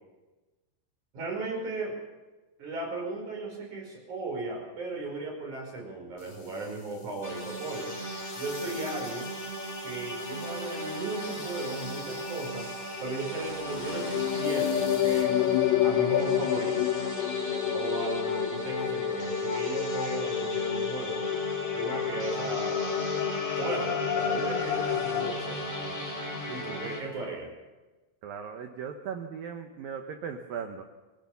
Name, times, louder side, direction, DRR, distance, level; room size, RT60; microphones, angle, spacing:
voice 1, 1.1-2.0 2.6-8.0 8.4-9.3 9.8-12.7 13.0-15.4 15.8-16.9 17.7-21.2 21.7-22.8 23.6-26.0 26.5-27.5, right 2 dB, 40° right, 0 dB, 6.3 m, -36 dB
sound 1, 6.2-15.6, left 4 dB, 70° left, 7.0 m, -51 dB
sound 2, 7.2-27.0, equal, 10° left, 3.2 m, -36 dB
sound 3, 13.5-25.3, left 10 dB, 85° left, 3.8 m, -29 dB
voice 2, 28.2-30.8, right 7 dB, 75° right, 6 dB, 2.1 m, -38 dB
22.5 x 17.5 x 7.0 m, 1.2 s
omnidirectional pair, 5.6 m